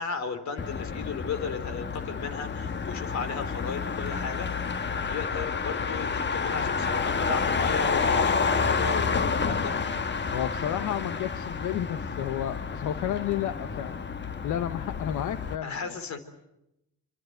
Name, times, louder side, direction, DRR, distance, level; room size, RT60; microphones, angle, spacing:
voice 1, 0.0-4.5 5.1-9.7 15.6-16.2, left 5 dB, 65° left, 10 dB, 3.8 m, -34 dB
Motor vehicle (road), 0.6-15.6, left 5 dB, 35° left, 1.3 m, -29 dB
voice 2, 10.3-14.0 14.4-16.0, left 11 dB, 85° left, 10 dB, 1.1 m, -31 dB
26.0 x 25.5 x 8.0 m, 0.87 s
cardioid pair, 90°, 30 cm